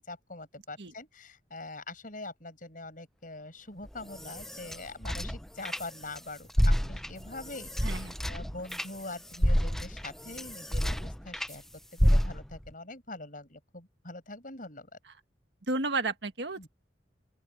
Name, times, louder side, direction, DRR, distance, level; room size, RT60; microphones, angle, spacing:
voice 1, 0.0-11.6 11.9-14.9 16.6-16.7, left 2 dB, 50° left, 7.3 m, -44 dB
sound 1, 3.9-6.2 6.5-11.6 12.0-12.7, equal, ahead, 0.5 m, -29 dB
voice 2, 7.8-8.1 15.7-16.7, right 3 dB, 70° right, 1.7 m, -32 dB
open air
head